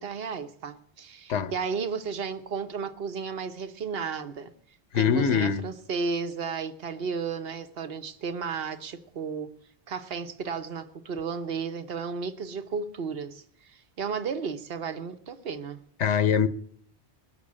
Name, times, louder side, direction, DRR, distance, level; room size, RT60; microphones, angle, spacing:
voice 1, 0.0-4.5 4.9-9.5 9.9-15.8, right 5 dB, 60° right, 1.2 m, -33 dB
voice 2, 4.9-5.6 16.0-16.5, left 7 dB, 85° left, 1.1 m, -23 dB
21.0 x 7.0 x 8.6 m
omnidirectional pair, 1.1 m